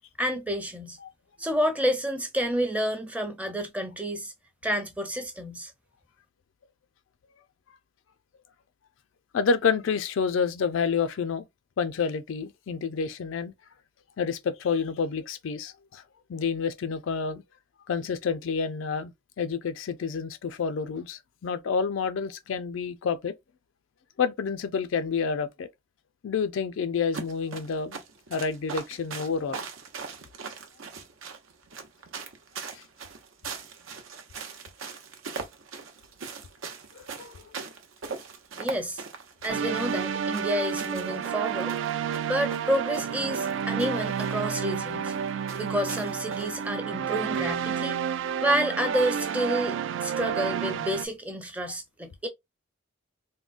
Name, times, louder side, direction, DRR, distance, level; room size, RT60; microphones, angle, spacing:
voice 1, 0.2-1.0 1.4-4.3 4.6-5.7 38.6-39.0 39.4-41.8 42.3-45.1 45.6-48.0 48.4-52.3, equal, 5° right, 0.5 m, -29 dB
voice 2, 9.3-11.5 11.8-13.5 14.2-16.0 16.3-17.4 17.9-19.1 19.4-23.3 24.2-25.7 26.2-28.0 28.3-29.6 32.7-32.8 36.9-37.5, left 5 dB, 70° left, 0.4 m, -29 dB
sound 1, 27.1-46.7, right 5 dB, 85° right, 0.7 m, -41 dB
sound 2, 39.5-51.1, right 7 dB, 70° right, 0.3 m, -30 dB
3.6 x 2.1 x 2.4 m
head